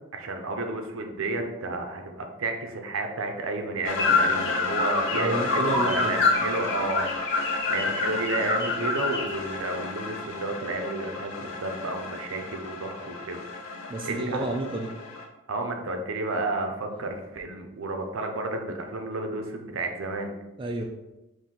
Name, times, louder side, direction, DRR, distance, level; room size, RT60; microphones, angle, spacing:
voice 1, 0.1-13.4 13.7-13.8 14.0-14.4 15.5-20.3, right 2 dB, 70° right, 4 dB, 0.6 m, -31 dB
sound 1, 3.8-15.3, left 3 dB, 90° left, 0.6 m, -34 dB
sound 2, 4.0-9.3, left 3 dB, 55° left, 0.9 m, -26 dB
voice 2, 5.2-6.1 13.9-14.9 20.6-20.9, right 2 dB, 25° right, 1 dB, 0.3 m, -30 dB
3.8 x 2.7 x 4.2 m, 1.0 s
head